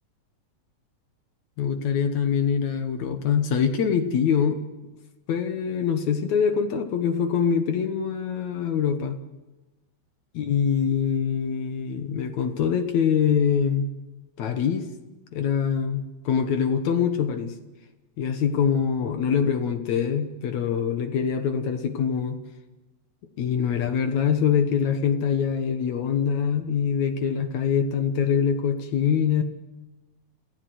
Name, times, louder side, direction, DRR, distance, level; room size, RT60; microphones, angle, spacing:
voice 1, 1.6-4.6 5.3-9.2 10.4-13.9 14.4-14.9 15.3-17.6 18.2-22.4 23.4-29.4, left 7 dB, 65° left, 7 dB, 2.3 m, -24 dB
28.0 x 15.0 x 8.0 m, 1.1 s
omnidirectional pair, 3.9 m